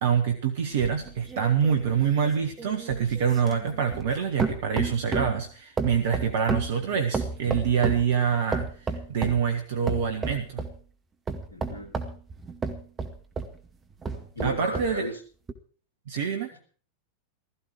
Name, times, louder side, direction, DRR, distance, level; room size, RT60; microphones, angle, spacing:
voice 1, 0.0-10.6 14.4-15.0 16.1-16.5, right 7 dB, 55° right, 5 dB, 1.5 m, -26 dB
sound 1, 0.8-4.1 4.4-5.4 5.8-8.1 8.5-9.4 9.9-10.8 11.3-13.6 14.0-15.0 15.5-15.6, right 4 dB, 20° right, 2.1 m, -32 dB
voice 2, 11.5-12.0 14.4-15.2, equal, 75° left, 5 dB, 3.7 m, -34 dB
16.0 x 14.0 x 4.7 m, 0.42 s
figure-of-eight pair, 90°, 0 cm